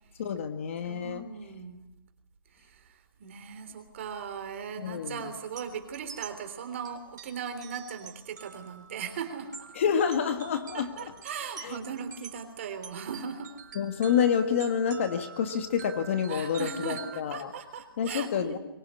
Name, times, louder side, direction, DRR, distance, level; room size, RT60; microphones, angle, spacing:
voice 1, 0.2-1.2 4.8-5.2 9.7-11.1 11.6-11.8 13.7-17.5 18.0-18.6, left 7 dB, 35° left, 7 dB, 1.7 m, -28 dB
voice 2, 0.9-1.8 2.5-9.8 10.7-13.5 16.3-18.6, right 7 dB, 35° right, 7 dB, 3.4 m, -38 dB
sound 1, 5.4-17.2, right 7 dB, 55° right, 4.5 m, -47 dB
23.5 x 20.0 x 9.8 m, 0.92 s
hypercardioid pair, 170°, 12 cm